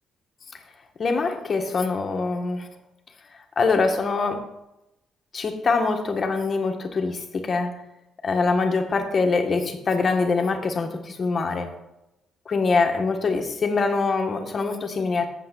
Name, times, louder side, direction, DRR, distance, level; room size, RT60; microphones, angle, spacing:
voice 1, 1.0-2.7 3.5-4.5 5.3-7.8 8.2-11.7 12.4-15.3, left 4 dB, 45° left, 5 dB, 1.6 m, -24 dB
7.5 x 5.8 x 7.6 m, 0.91 s
cardioid pair, 90°, 0 cm